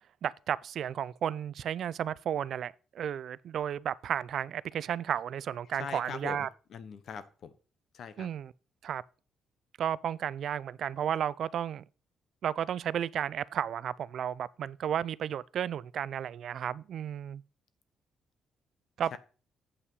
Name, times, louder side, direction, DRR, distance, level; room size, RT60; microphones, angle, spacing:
voice 1, 0.2-6.5 8.2-8.5 8.8-9.0 9.8-11.8 12.4-17.4 19.0-19.2, right 9 dB, 65° right, 0.3 m, -33 dB
voice 2, 5.6-7.5 7.9-8.3 19.1-19.2, left 7 dB, 65° left, 0.9 m, -42 dB
8.3 x 5.5 x 5.4 m
cardioid pair, 90°, 0 cm